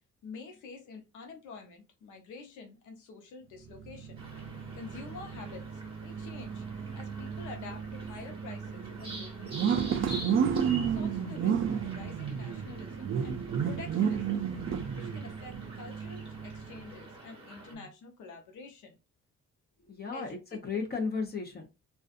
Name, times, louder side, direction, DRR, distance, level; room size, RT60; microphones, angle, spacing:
voice 1, 0.2-4.2 4.7-6.6 6.9-10.3 10.8-14.4 14.9-19.0 20.1-20.4, left 4 dB, 80° left, 0.8 m, -48 dB
sound 1, 3.6-17.0, right 7 dB, 45° right, 0.4 m, -33 dB
sound 2, 4.2-17.7, right 1 dB, 20° right, 1.3 m, -48 dB
voice 2, 19.9-21.6, left 4 dB, 30° left, 0.8 m, -34 dB
2.4 x 2.4 x 2.5 m
cardioid pair, 90°, 30 cm